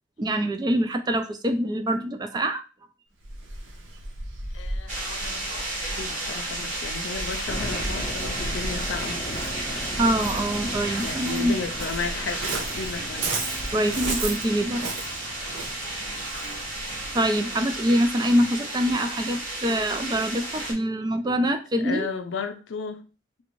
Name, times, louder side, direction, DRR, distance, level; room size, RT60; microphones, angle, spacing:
voice 1, 0.2-2.6 10.0-11.6 13.7-14.9 17.1-22.1, equal, 20° right, 0.3 m, -24 dB
Waves surf, 3.2-17.1, right 2 dB, 80° right, 0.7 m, -35 dB
voice 2, 4.5-9.4 11.0-13.3 21.8-23.1, left 5 dB, 75° left, 0.5 m, -34 dB
sound 1, 4.9-20.7, right 1 dB, 45° right, 1.4 m, -33 dB
sound 2, 7.4-17.3, equal, 20° left, 0.6 m, -40 dB
3.3 x 2.5 x 3.0 m
head